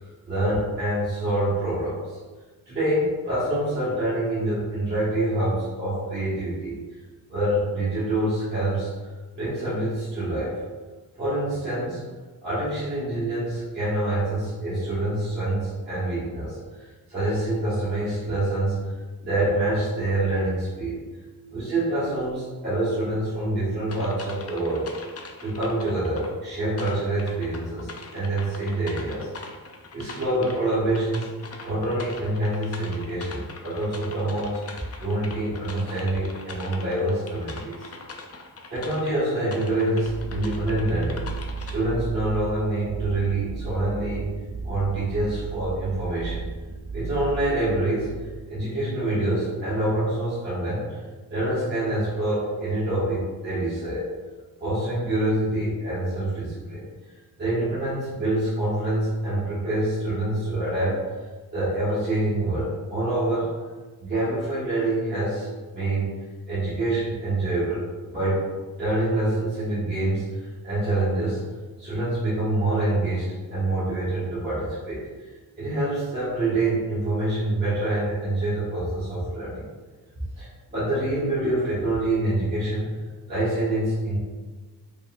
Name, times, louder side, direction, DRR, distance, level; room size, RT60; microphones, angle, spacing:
voice 1, 0.3-2.2 2.7-6.8 7.3-8.9 9.3-10.6 11.1-12.0 12.4-18.9 19.2-21.0 21.5-24.9 25.4-29.3 29.9-31.3 31.6-37.9 38.7-41.2 41.6-44.3 44.6-46.4 46.9-48.2 48.5-51.0 51.3-54.1 54.6-56.8 57.4-61.0 61.5-63.5 64.0-66.1 66.5-68.5 68.8-71.4 71.8-75.3 75.6-79.6 80.1-82.9 83.3-84.2, right 1 dB, 25° right, -13 dB, 1.5 m, -26 dB
sound 1, 23.9-26.3 26.8-39.2 39.5-41.7, left 3 dB, 40° left, 0.4 m, -42 dB
sound 2, 40.0-48.5, right 5 dB, 80° right, 0.7 m, -35 dB
5.2 x 3.1 x 2.4 m, 1.3 s
wide cardioid pair, 170°, 37 cm